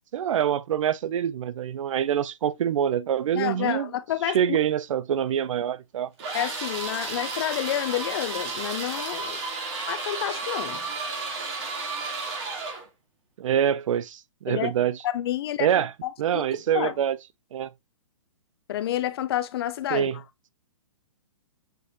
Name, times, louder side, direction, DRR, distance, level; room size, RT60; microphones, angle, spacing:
voice 1, 0.1-3.9 4.3-6.1 13.4-15.0 15.6-15.9 16.2-17.2 17.5-17.7 19.9-20.2, right 9 dB, 70° right, 0.5 m, -25 dB
voice 2, 3.3-4.6 6.3-9.4 9.9-10.8 14.5-14.7 15.0-15.7 16.0-16.4 16.7-16.9 18.7-20.1, left 12 dB, 45° left, 0.5 m, -29 dB
sound 1, 6.2-12.9, right 3 dB, 50° right, 1.9 m, -32 dB
6.6 x 2.5 x 2.6 m
hypercardioid pair, 155°, 17 cm